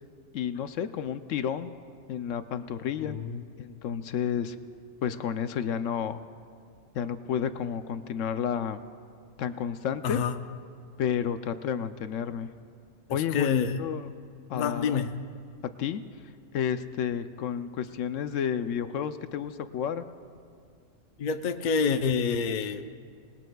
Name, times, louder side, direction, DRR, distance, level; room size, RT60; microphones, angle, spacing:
voice 1, 0.3-1.7 2.1-3.2 3.6-4.6 5.0-6.2 6.9-8.8 9.4-10.2 11.0-12.5 13.1-14.1 14.5-15.0 15.8-16.0 16.5-20.0, left 8 dB, 75° left, 11 dB, 0.9 m, -31 dB
voice 2, 3.0-3.4 10.0-10.4 13.1-13.8 14.5-15.2 21.2-23.0, left 6 dB, 50° left, 8 dB, 0.6 m, -27 dB
26.5 x 20.0 x 2.3 m, 2.2 s
omnidirectional pair, 1.3 m